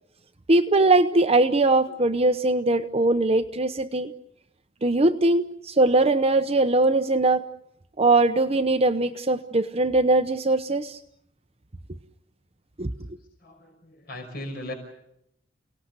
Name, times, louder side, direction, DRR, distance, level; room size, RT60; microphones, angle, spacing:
voice 1, 0.5-4.1 4.8-7.5 8.0-11.0 12.8-12.9, right 2 dB, 35° right, 8 dB, 0.9 m, -21 dB
voice 2, 13.4-14.7, left 1 dB, 55° left, 3 dB, 5.8 m, -37 dB
29.5 x 19.0 x 8.1 m, 0.78 s
head